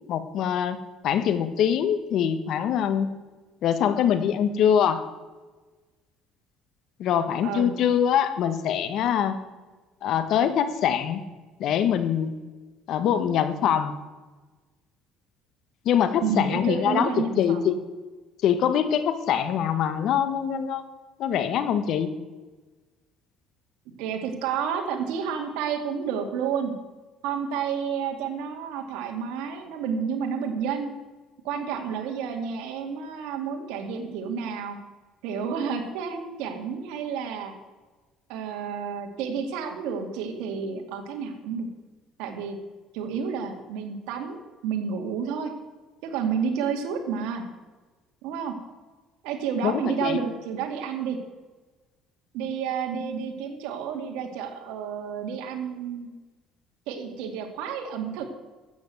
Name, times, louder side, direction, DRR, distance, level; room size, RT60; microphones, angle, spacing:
voice 1, 0.1-0.8 1.0-3.1 3.6-5.1 7.0-9.4 10.0-11.2 11.6-12.3 12.9-14.0 15.8-17.7 18.4-20.8 21.2-22.1 49.6-50.2, left 9 dB, 60° left, 11 dB, 1.3 m, -24 dB
voice 2, 16.2-17.7 24.0-26.7 27.2-30.9 31.4-34.8 35.2-37.5 38.3-41.7 42.2-42.6 42.9-45.5 46.0-47.4 48.2-48.5 49.2-51.2 52.3-56.1 56.9-58.2, right 6 dB, 85° right, 3 dB, 2.3 m, -30 dB
12.5 x 8.0 x 7.9 m, 1.3 s
cardioid pair, 120°, 0 cm